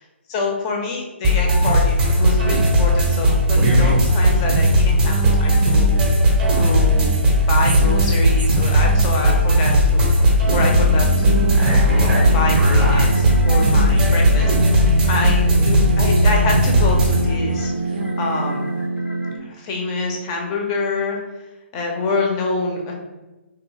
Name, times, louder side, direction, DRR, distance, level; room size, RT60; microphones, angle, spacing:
voice 1, 0.3-5.9 6.5-10.1 10.5-11.6 12.0-18.7 19.4-21.2 21.7-22.9, left 3 dB, 25° left, 1 dB, 0.6 m, -26 dB
sound 1, 1.2-17.2, equal, 15° right, 0.7 m, -16 dB
sound 2, 2.2-18.9, right 4 dB, 45° right, 0.5 m, -33 dB
sound 3, 10.4-19.4, right 1 dB, 85° left, 0.6 m, -25 dB
3.2 x 2.4 x 3.1 m, 1.1 s
figure-of-eight pair, 135°, 7 cm